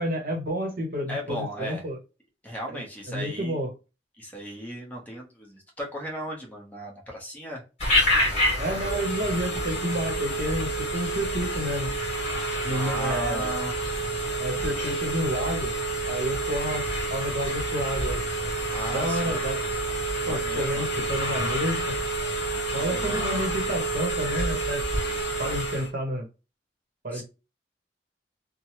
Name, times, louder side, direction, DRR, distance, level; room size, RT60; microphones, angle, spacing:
voice 1, 0.0-2.0 2.7-2.8 3.1-3.7 8.6-11.9 12.6-13.6 14.4-15.7 16.1-18.2 18.9-19.6 20.3-22.0 22.7-24.8 25.4-26.3 27.0-27.2, equal, 55° right, 1.0 m, -30 dB
voice 2, 1.1-1.8 2.4-3.6 4.2-7.6 12.7-13.7 18.7-19.4 20.2-20.9 22.7-23.3 27.1-27.2, equal, 10° left, 1.0 m, -36 dB
Telephone, 7.8-25.9, right 1 dB, 40° left, 1.6 m, -28 dB
3.2 x 2.2 x 2.8 m
head